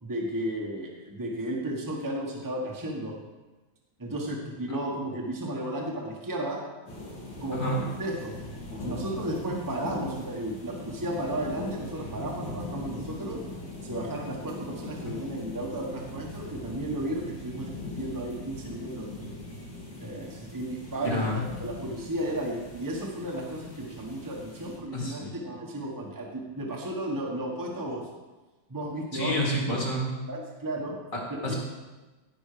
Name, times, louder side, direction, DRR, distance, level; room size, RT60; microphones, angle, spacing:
voice 1, 0.0-3.1 4.0-6.6 7.4-8.3 8.8-13.4 13.8-19.1 20.0-21.3 21.6-28.1 28.7-29.5 30.3-31.0 31.4-31.5, right 1 dB, 10° right, -2 dB, 1.3 m, -33 dB
sound 1, 6.9-24.8, left 2 dB, 70° left, 3.7 m, -40 dB
voice 2, 21.1-21.4 24.9-25.3 29.1-30.1 31.1-31.6, equal, 45° left, -2 dB, 2.5 m, -29 dB
16.0 x 5.4 x 5.0 m, 1.2 s
omnidirectional pair, 2.0 m